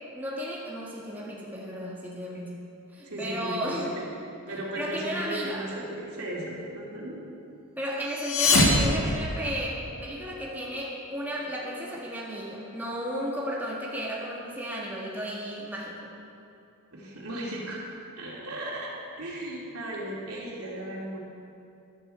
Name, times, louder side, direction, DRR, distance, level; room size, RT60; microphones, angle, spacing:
voice 1, 0.1-2.6 2.9-3.9 4.8-5.6 7.8-15.9, equal, 10° right, -5 dB, 1.7 m, -34 dB
voice 2, 3.0-4.0 4.5-7.2 16.9-17.8 18.2-18.9 19.2-21.2, right 1 dB, 75° right, -4 dB, 2.8 m, -36 dB
sound 1, 8.1-9.9, left 2 dB, 65° left, 1.6 m, -24 dB
14.5 x 11.5 x 4.4 m, 2.6 s
head